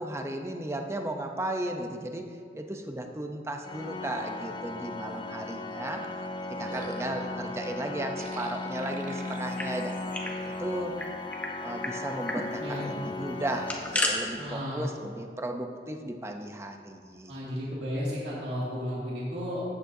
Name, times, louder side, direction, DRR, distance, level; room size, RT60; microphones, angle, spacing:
voice 1, 0.0-2.3 2.5-6.0 6.4-10.0 10.6-11.0 11.6-17.3, right 1 dB, 15° right, 4 dB, 0.6 m, -35 dB
Organ, 3.6-14.6, left 2 dB, 25° left, 0.4 m, -37 dB
sound 1, 6.0-7.5 8.2-11.2 11.6-12.1 12.4-14.9, right 3 dB, 45° right, 0.8 m, -47 dB
sound 2, 9.3-10.4 10.6-10.7 11.0-11.5 11.8-11.9 12.2-12.4 13.4-14.1, left 1 dB, 10° left, 1.0 m, -32 dB
voice 2, 14.3-14.9 17.3-19.7, equal, 75° right, -7 dB, 2.2 m, -33 dB
14.5 x 9.1 x 2.7 m, 2.3 s
head